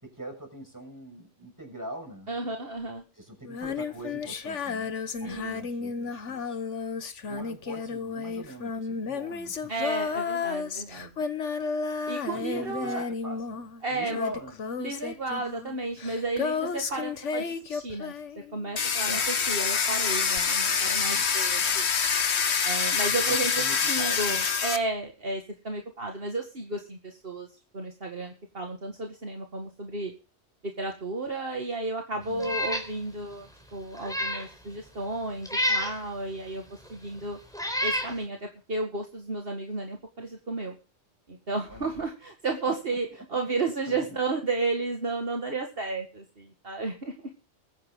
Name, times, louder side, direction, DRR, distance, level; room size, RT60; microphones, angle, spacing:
voice 1, 0.0-2.3 3.1-4.9 5.2-6.6 7.3-9.7 12.3-14.6 19.0-19.3 20.6-21.8 23.1-24.4 32.1-32.6 41.7-41.9 42.7-43.3 43.9-44.2, equal, 15° right, 3 dB, 6.7 m, -42 dB
voice 2, 2.3-3.0 5.2-5.6 9.7-11.1 12.1-13.1 13.8-14.2 14.8-18.1 18.5-21.9 22.6-27.5 27.7-30.1 30.6-37.4 37.8-40.7 41.3-47.1, right 3 dB, 55° right, 3 dB, 2.2 m, -33 dB
Female singing, 3.5-18.8 20.4-20.5, left 5 dB, 80° left, 1.5 m, -33 dB
Domestic sounds home sounds, 18.8-24.8, left 6 dB, 65° left, 1.5 m, -25 dB
Meow, 32.4-32.9 33.3-33.4 33.9-34.5 35.5-36.0 36.8-36.9 37.5-38.1, left 1 dB, 5° left, 4.0 m, -29 dB
22.0 x 9.8 x 3.8 m, 0.33 s
omnidirectional pair, 1.2 m